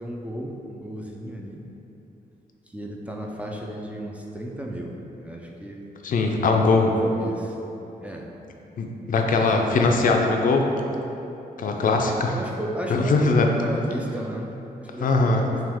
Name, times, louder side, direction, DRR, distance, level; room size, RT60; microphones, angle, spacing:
voice 1, 0.0-1.6 2.7-5.8 6.4-7.6 8.0-8.3 9.1-10.2 11.8-15.6, right 1 dB, 10° right, -1 dB, 0.3 m, -34 dB
voice 2, 6.0-6.9 8.8-10.6 11.6-12.3 12.9-13.5 15.0-15.4, left 3 dB, 60° left, 2 dB, 0.4 m, -21 dB
5.9 x 2.3 x 3.5 m, 3.0 s
wide cardioid pair, 135°, 16 cm